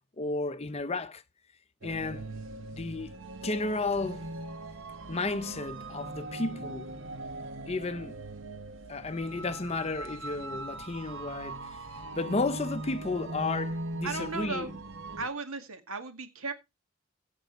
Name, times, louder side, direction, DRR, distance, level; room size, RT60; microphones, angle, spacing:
voice 1, 0.2-1.2 1.8-2.2 2.7-3.1 3.4-4.3 5.1-7.0 7.7-8.2 8.9-11.8 12.2-14.7, left 3 dB, 30° left, 0.6 m, -33 dB
sound 1, 1.8-15.3, right 2 dB, 60° right, 1.1 m, -40 dB
voice 2, 14.0-14.7 15.2-16.5, right 3 dB, 80° right, 1.9 m, -35 dB
15.5 x 5.3 x 4.6 m
head